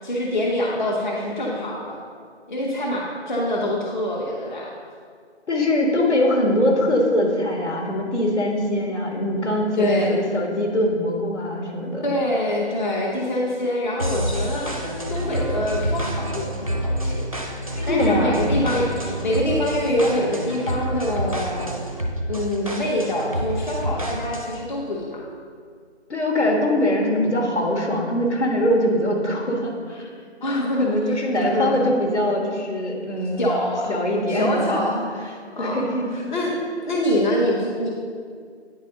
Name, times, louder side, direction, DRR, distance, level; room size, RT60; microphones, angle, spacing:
voice 1, 0.0-2.0 2.5-4.7 9.8-10.2 12.0-14.7 15.1-17.3 17.9-21.8 22.3-25.2 30.4-31.2 31.5-31.9 33.4-33.9 34.3-35.8 36.1-36.5 36.9-37.9, left 1 dB, 45° left, -3 dB, 0.9 m, -25 dB
voice 2, 5.5-12.1 17.8-18.4 26.1-30.1 30.5-33.5 33.9-34.5 35.6-36.1, left 1 dB, 75° left, 0 dB, 1.7 m, -22 dB
sound 1, 14.0-24.6, equal, 30° right, 0.5 m, -28 dB
9.4 x 4.1 x 3.8 m, 2.1 s
figure-of-eight pair, 170°, 34 cm